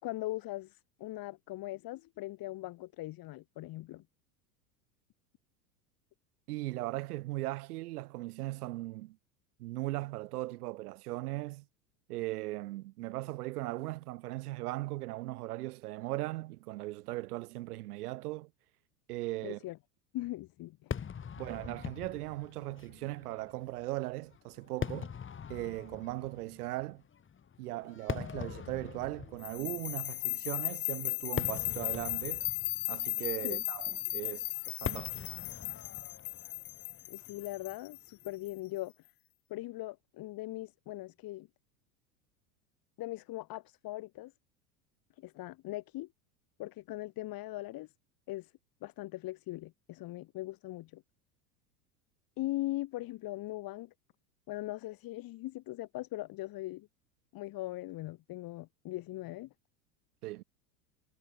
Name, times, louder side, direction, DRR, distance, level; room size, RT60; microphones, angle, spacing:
voice 1, 0.0-4.0 19.4-19.8 20.1-21.0 33.4-33.6 37.1-38.9 39.5-41.5 43.0-44.3 45.2-46.1 46.6-47.9 48.3-48.5 48.8-51.0 52.4-53.9 54.5-56.9 57.3-59.5, left 17 dB, 45° left, 6.1 m, -40 dB
voice 2, 6.5-9.2 9.6-11.6 12.1-18.5 19.1-19.6 21.4-25.1 25.5-27.0 27.6-32.5 32.9-35.2 60.2-60.4, right 19 dB, 70° right, 2.5 m, -38 dB
Fireworks, 20.9-38.2, left 7 dB, 25° left, 6.7 m, -44 dB
sound 1, 29.4-38.5, left 21 dB, 65° left, 1.7 m, -36 dB
hypercardioid pair, 105°, 47 cm